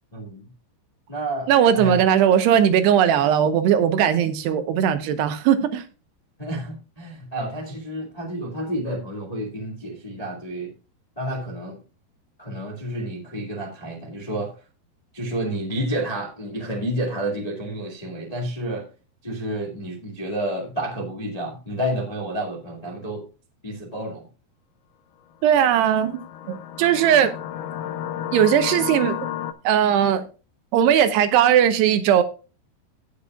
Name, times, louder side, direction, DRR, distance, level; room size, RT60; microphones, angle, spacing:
voice 1, 0.1-0.5 1.1-2.0 6.4-10.7 11.2-11.8 12.4-14.5 15.1-18.9 19.2-23.2 23.6-24.3, right 1 dB, 55° left, 0.4 m, -30 dB
voice 2, 1.5-5.8 25.4-26.2 26.5-27.3 28.3-29.2 29.6-30.2 30.7-32.2, right 9 dB, 75° right, 3.0 m, -18 dB
sound 1, 25.5-29.5, left 10 dB, 80° left, 2.6 m, -32 dB
17.0 x 6.9 x 2.4 m
omnidirectional pair, 4.9 m